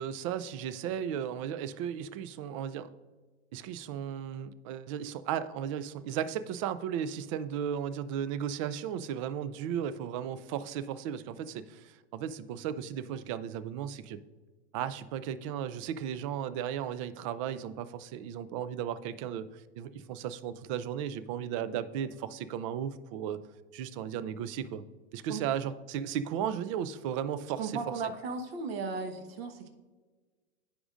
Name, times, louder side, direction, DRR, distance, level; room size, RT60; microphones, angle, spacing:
voice 1, 0.0-2.9 3.5-14.2 14.7-23.4 23.7-24.8 25.1-27.8, right 9 dB, 30° right, 15 dB, 0.4 m, -35 dB
voice 2, 27.6-29.7, right 4 dB, 60° right, 6 dB, 1.3 m, -36 dB
15.0 x 5.0 x 2.5 m, 1.3 s
hypercardioid pair, 130°, 34 cm